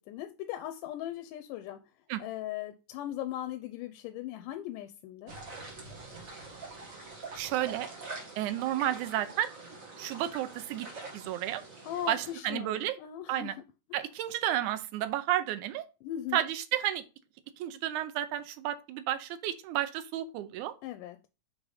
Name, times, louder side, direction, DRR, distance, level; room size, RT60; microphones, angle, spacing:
voice 1, 0.1-1.8 2.2-5.4 11.8-13.5 16.0-16.4 20.8-21.2, left 12 dB, 90° left, 2.2 m, -38 dB
sound 1, 5.3-12.3, right 3 dB, 35° right, 1.4 m, -45 dB
voice 2, 7.4-7.9 8.4-9.5 10.0-10.9 11.1-11.6 12.1-13.0 13.3-13.6 13.9-15.9 16.3-17.0 17.6-20.7, right 12 dB, 75° right, 2.0 m, -31 dB
6.3 x 3.8 x 4.8 m
omnidirectional pair, 3.7 m